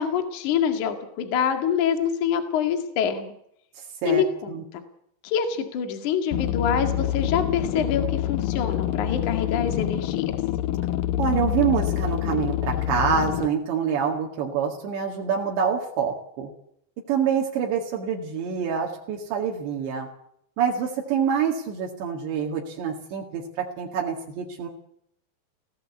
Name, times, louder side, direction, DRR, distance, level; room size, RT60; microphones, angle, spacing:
voice 1, 0.0-3.3 4.0-4.5 5.2-10.2, left 7 dB, 50° left, 6 dB, 2.9 m, -25 dB
voice 2, 4.0-4.6 11.2-16.5 17.1-20.1 20.6-23.4 23.8-24.7, right 7 dB, 75° right, -1 dB, 4.3 m, -26 dB
sound 1, 6.3-13.5, left 12 dB, 80° left, 2.0 m, -26 dB
20.0 x 17.0 x 8.2 m, 0.70 s
omnidirectional pair, 5.2 m